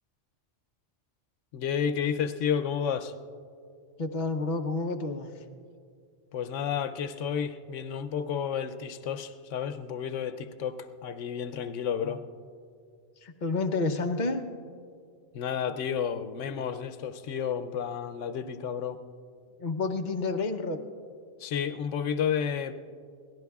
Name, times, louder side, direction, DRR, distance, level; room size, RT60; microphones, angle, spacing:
voice 1, 1.5-3.1 6.3-12.2 15.3-19.0 21.4-22.7, left 8 dB, 90° left, 9 dB, 1.0 m, -31 dB
voice 2, 4.0-5.3 12.0-12.1 13.2-14.4 19.6-20.8, left 3 dB, 45° left, 5 dB, 0.9 m, -29 dB
26.0 x 18.0 x 2.3 m, 2.3 s
omnidirectional pair, 1.2 m